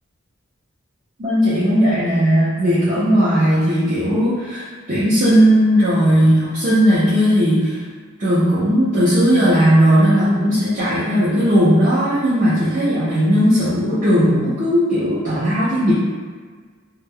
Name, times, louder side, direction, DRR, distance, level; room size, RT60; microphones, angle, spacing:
voice 1, 1.2-7.8 8.2-15.9, equal, 40° right, -12 dB, 0.7 m, -16 dB
2.2 x 2.1 x 3.4 m, 1.5 s
head